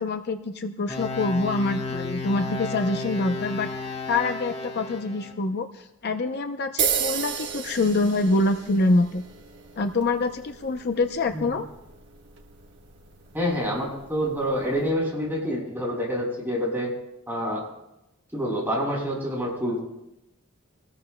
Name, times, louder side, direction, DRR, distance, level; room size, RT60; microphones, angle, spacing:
voice 1, 0.0-9.2 9.8-11.6, left 2 dB, 50° left, 6 dB, 0.7 m, -25 dB
sound 1, 0.9-5.3, left 3 dB, 25° left, 2.1 m, -33 dB
sound 2, 6.8-14.9, right 7 dB, 60° right, 1.4 m, -34 dB
voice 2, 13.3-16.9 17.3-17.6 18.3-19.8, equal, 10° right, -5 dB, 7.2 m, -27 dB
26.5 x 19.5 x 2.2 m, 0.89 s
head